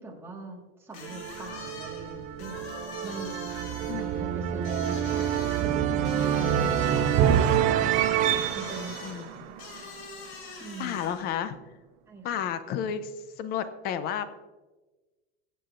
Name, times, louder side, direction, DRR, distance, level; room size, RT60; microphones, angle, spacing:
voice 1, 0.0-2.7 3.0-3.4 4.0-8.0 8.5-9.0 10.6-10.9 12.1-12.5, right 3 dB, 10° right, -2 dB, 1.6 m, -42 dB
sound 1, 0.9-11.4, left 4 dB, 85° left, 4.2 m, -44 dB
sound 2, 1.0-10.1, right 9 dB, 25° right, 0.3 m, -27 dB
voice 2, 3.9-4.3 9.0-9.3 10.4-11.6 12.2-13.1 13.4-14.5, left 8 dB, 30° left, 12 dB, 0.6 m, -32 dB
21.5 x 7.7 x 2.5 m, 1.2 s
supercardioid pair, 160°, 32 cm